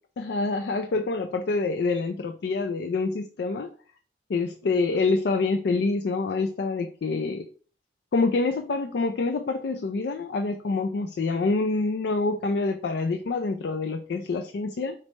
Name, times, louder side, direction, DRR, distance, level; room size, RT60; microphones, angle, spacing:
voice 1, 0.2-3.7 4.3-7.4 8.1-14.9, left 3 dB, 60° left, 8 dB, 0.4 m, -26 dB
5.2 x 3.2 x 3.1 m, 0.43 s
head